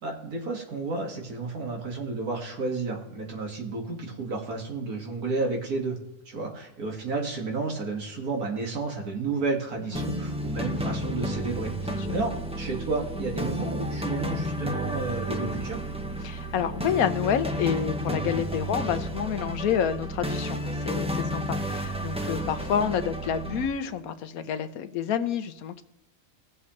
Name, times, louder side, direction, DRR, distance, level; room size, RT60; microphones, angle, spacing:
voice 1, 0.0-6.0 6.3-15.8, right 3 dB, 85° right, 1 dB, 2.5 m, -31 dB
sound 1, 9.9-23.7, equal, 5° right, 0.7 m, -31 dB
voice 2, 16.2-25.8, left 8 dB, 75° left, 11 dB, 1.2 m, -28 dB
20.0 x 7.6 x 3.2 m, 0.90 s
omnidirectional pair, 1.5 m